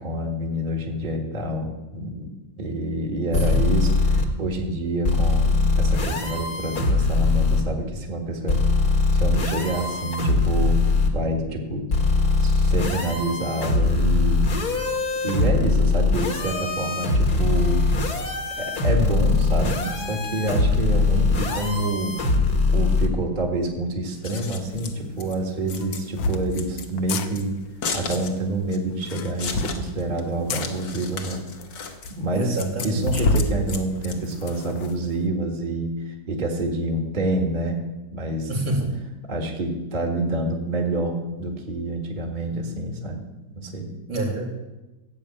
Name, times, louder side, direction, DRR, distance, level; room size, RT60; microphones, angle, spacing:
voice 1, 0.0-2.3 2.6-8.6 9.1-10.8 11.1-11.9 12.4-14.4 15.2-17.8 18.6-22.2 22.7-27.6 27.9-31.5 31.8-37.8 38.1-38.5 39.3-43.2 43.6-43.9, right 1 dB, 25° right, 2 dB, 1.7 m, -27 dB
sound 1, 3.3-4.2 5.0-7.6 8.5-11.1 11.9-23.1, left 3 dB, 55° left, 2.0 m, -21 dB
Scissors, 24.1-34.7, left 5 dB, 70° left, 2.0 m, -36 dB
sound 2, 24.7-24.8 25.7-26.4 27.0-27.3 28.9-29.8 30.5-30.7 31.3-31.4 31.6-31.7 32.0-32.1 33.0-33.5 34.0-34.9, left 2 dB, 85° left, 1.7 m, -26 dB
voice 2, 32.3-33.2 38.5-38.9 44.1-44.5, right 2 dB, 85° right, -4 dB, 3.2 m, -27 dB
15.0 x 7.1 x 8.7 m, 1.1 s
omnidirectional pair, 2.0 m